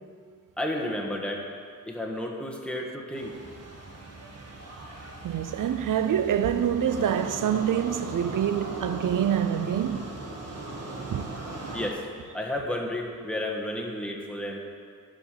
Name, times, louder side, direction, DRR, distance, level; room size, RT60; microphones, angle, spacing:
voice 1, 0.6-1.4 1.8-3.3 11.7-12.0 12.3-14.6, left 1 dB, 5° left, 1.4 m, -32 dB
sound 1, 3.1-11.9, right 2 dB, 50° right, 1.8 m, -39 dB
voice 2, 5.2-10.0 11.1-11.3, right 9 dB, 80° right, 0.6 m, -26 dB
11.5 x 5.1 x 7.4 m
wide cardioid pair, 95°, 31 cm